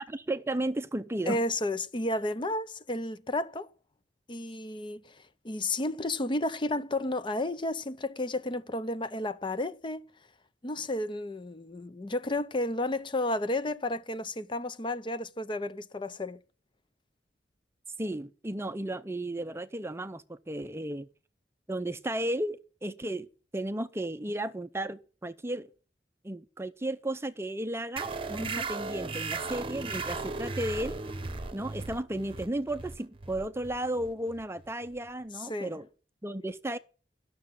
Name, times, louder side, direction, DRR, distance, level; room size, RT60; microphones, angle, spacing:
voice 1, 0.1-1.4 18.0-21.1 21.7-23.3 23.5-25.7 26.2-31.0 31.5-35.9 36.2-36.8, right 1 dB, 15° right, 0.6 m, -34 dB
voice 2, 1.3-3.7 4.3-10.1 10.6-16.4 28.4-28.7 35.4-35.7, left 2 dB, 30° left, 0.6 m, -32 dB
sound 1, 28.0-35.1, right 3 dB, 30° right, 1.0 m, -37 dB
12.5 x 6.8 x 8.5 m
head